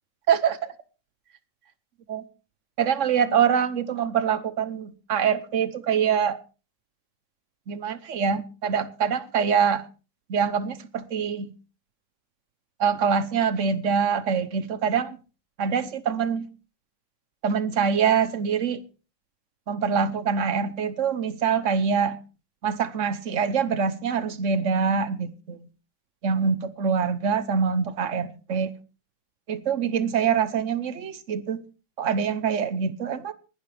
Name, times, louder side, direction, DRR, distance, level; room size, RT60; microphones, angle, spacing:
voice 1, 0.3-0.7 2.1-2.2 2.8-6.4 7.7-9.8 10.3-11.5 12.8-15.2 15.6-16.5 17.4-18.8 19.7-22.2 22.6-25.6 26.2-28.7 29.5-31.6 32.0-33.3, right 6 dB, 50° right, 1.1 m, -24 dB
19.5 x 11.5 x 3.4 m
omnidirectional pair, 2.0 m